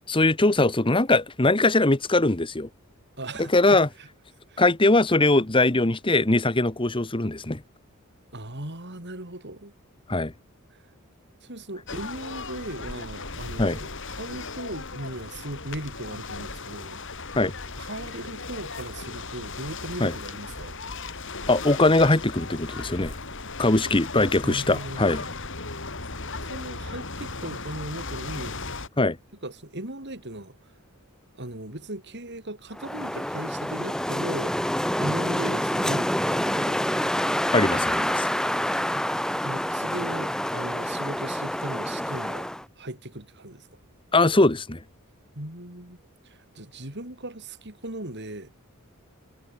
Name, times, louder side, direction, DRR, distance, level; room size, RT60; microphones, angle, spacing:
voice 1, 0.1-2.7 3.5-3.9 4.6-7.6 10.1-10.3 13.6-13.8 17.3-17.5 20.0-20.1 21.5-23.1 23.6-25.3 29.0-29.2 37.5-38.3 44.1-44.8, left 2 dB, 25° left, 1.3 m, -21 dB
voice 2, 3.2-3.8 4.5-4.6 8.3-9.7 11.4-17.4 17.8-20.8 24.2-25.3 26.5-28.6 29.4-30.6 31.4-34.6 35.0-37.0 38.9-39.1 39.4-42.5 42.8-43.7 45.3-46.0 46.2-48.5, right 1 dB, 50° right, 4.6 m, -38 dB
sound 1, 11.9-28.9, left 3 dB, 60° left, 5.7 m, -37 dB
Wind, 32.8-42.6, equal, 5° left, 1.1 m, -27 dB
head